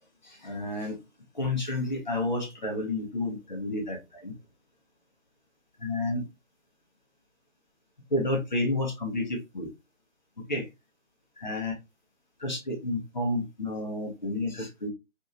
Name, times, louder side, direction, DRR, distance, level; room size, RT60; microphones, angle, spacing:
voice 1, 0.2-1.0 1.3-4.3 5.8-6.2 8.1-9.7 10.5-10.7 11.4-11.7 12.4-14.9, left 2 dB, 35° left, 0.8 m, -30 dB
2.9 x 2.7 x 2.4 m
figure-of-eight pair, 160°, 41 cm